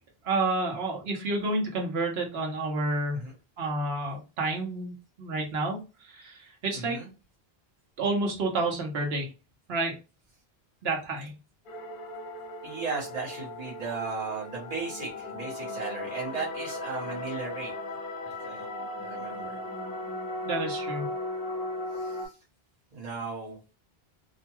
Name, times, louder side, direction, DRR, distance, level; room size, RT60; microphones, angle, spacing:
voice 1, 0.2-3.2 3.6-4.9 5.2-5.8 6.1-7.0 8.0-9.3 9.7-9.9 10.8-11.3 20.5-21.1, right 2 dB, 75° right, 1 dB, 1.1 m, -29 dB
voice 2, 6.7-7.1 12.6-17.7 18.2-18.6 19.0-19.6 21.9-22.3 22.9-23.6, right 4 dB, 40° right, -5 dB, 1.1 m, -36 dB
sound 1, 11.7-22.3, left 1 dB, 60° left, 0.9 m, -37 dB
2.7 x 2.2 x 2.9 m, 0.31 s
omnidirectional pair, 1.0 m